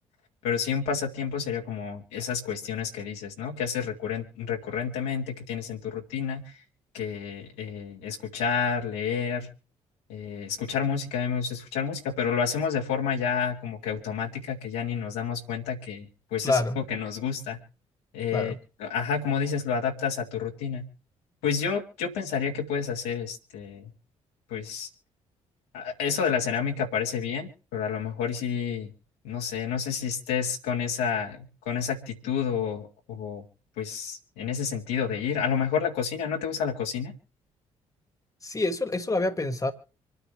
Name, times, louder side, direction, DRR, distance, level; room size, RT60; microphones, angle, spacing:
voice 1, 0.4-6.6 6.9-9.5 10.1-16.1 16.3-17.6 18.1-18.5 18.8-20.8 21.4-23.9 24.5-24.9 25.7-28.9 29.2-33.4 33.8-37.1, left 7 dB, 70° left, 2.2 m, -30 dB
voice 2, 16.4-16.8 18.3-18.6 38.4-39.7, left 2 dB, 20° left, 1.4 m, -27 dB
26.5 x 9.4 x 3.3 m
figure-of-eight pair, 45°, 16 cm